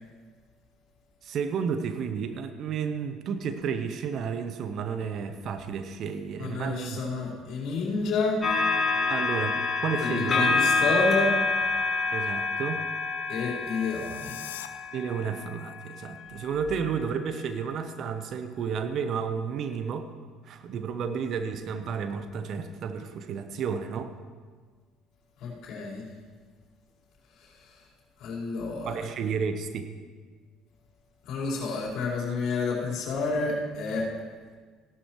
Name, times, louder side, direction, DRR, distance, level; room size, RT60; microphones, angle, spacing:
voice 1, 1.2-7.0 9.1-10.6 12.1-12.8 14.9-20.1 20.4-24.1 28.9-29.9, right 6 dB, 55° right, 9 dB, 0.9 m, -32 dB
voice 2, 6.4-8.5 10.0-11.4 13.3-14.4 25.4-26.0 27.6-27.7 28.2-29.1 31.3-34.1, left 3 dB, 60° left, -6 dB, 4.4 m, -29 dB
sound 1, 8.4-15.9 16.6-16.8, left 4 dB, 30° left, 3.0 m, -27 dB
sound 2, 13.6-14.7, left 12 dB, 80° left, 0.5 m, -43 dB
16.5 x 11.5 x 3.1 m, 1.5 s
hypercardioid pair, 60°, 0 cm